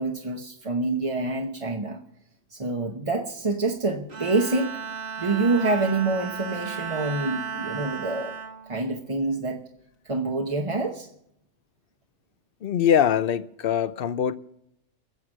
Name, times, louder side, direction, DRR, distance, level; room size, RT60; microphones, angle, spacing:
voice 1, 0.0-2.0 2.5-4.8 5.2-8.4 8.7-9.6 10.1-11.1, right 3 dB, 30° right, 0.9 m, -26 dB
Bowed string instrument, 4.1-9.6, right 7 dB, 55° right, 2.0 m, -35 dB
voice 2, 12.6-14.3, left 9 dB, 55° left, 0.7 m, -23 dB
20.0 x 7.6 x 6.5 m
omnidirectional pair, 1.3 m